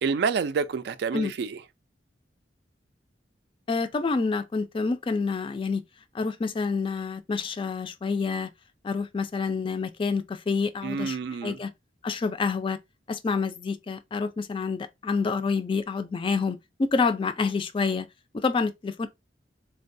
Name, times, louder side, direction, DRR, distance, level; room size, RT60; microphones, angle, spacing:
voice 1, 0.0-1.6 10.8-11.6, right 5 dB, 65° right, 0.3 m, -28 dB
voice 2, 3.7-5.8 6.1-8.5 8.8-11.7 12.0-12.8 13.1-18.1 18.3-19.1, left 4 dB, 30° left, 0.4 m, -28 dB
3.8 x 2.2 x 2.6 m
head